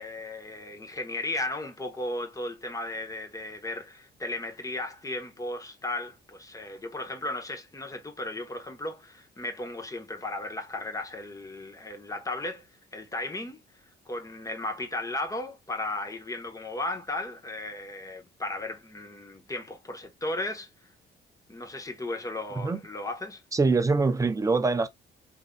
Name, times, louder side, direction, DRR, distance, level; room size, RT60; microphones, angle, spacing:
voice 1, 0.0-12.7 12.9-13.6 14.1-20.7 21.5-23.4, left 2 dB, 15° left, 1.0 m, -35 dB
voice 2, 23.5-24.9, right 4 dB, 15° right, 0.6 m, -24 dB
3.2 x 2.6 x 2.2 m
cardioid pair, 90°, 20 cm